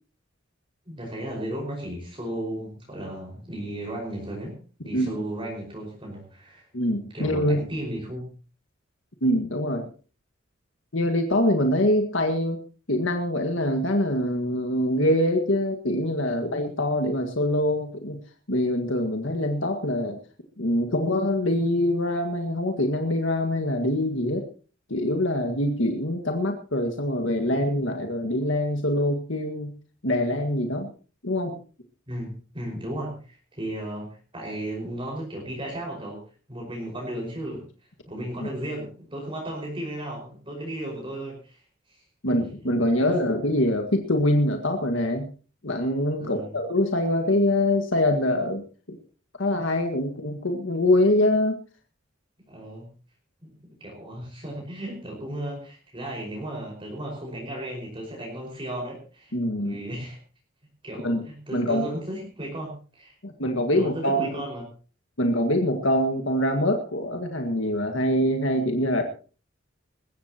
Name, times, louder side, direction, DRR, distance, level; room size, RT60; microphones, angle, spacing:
voice 1, 0.9-4.5 4.8-6.7 7.1-8.3 32.1-36.2 36.5-37.6 38.1-42.0 43.0-43.1 46.1-46.6 52.5-52.9 53.4-53.5 53.8-60.2 60.8-63.1 63.7-64.6, right 1 dB, 25° right, -1 dB, 5.3 m, -35 dB
voice 2, 6.7-7.7 9.2-9.9 10.9-12.6 12.9-18.2 18.5-20.2 20.6-24.4 24.9-29.8 30.0-30.9 31.2-31.6 42.2-45.3 45.6-49.0 49.4-51.6 59.3-59.8 61.0-61.2 61.5-61.9 63.2-64.4 65.2-69.0, left 1 dB, 75° left, 4 dB, 1.9 m, -24 dB
21.0 x 15.5 x 3.0 m, 0.37 s
head